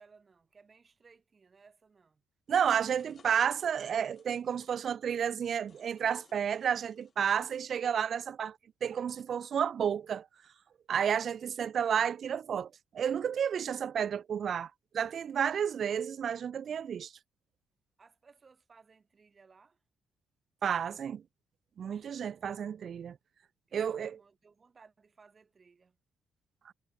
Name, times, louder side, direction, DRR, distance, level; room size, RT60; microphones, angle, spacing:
voice 1, 0.0-2.2 18.0-19.8 23.7-26.0, right 5 dB, 30° right, 7.1 m, -61 dB
sound 1, 2.5-4.7 5.6-7.7, left 6 dB, 40° left, 7.4 m, -65 dB
voice 2, 2.5-10.3 10.9-17.1 20.6-21.2 21.8-23.2 23.7-24.2 26.6-26.7, right 8 dB, 50° right, 1.0 m, -31 dB
cardioid pair, 115°, 0 cm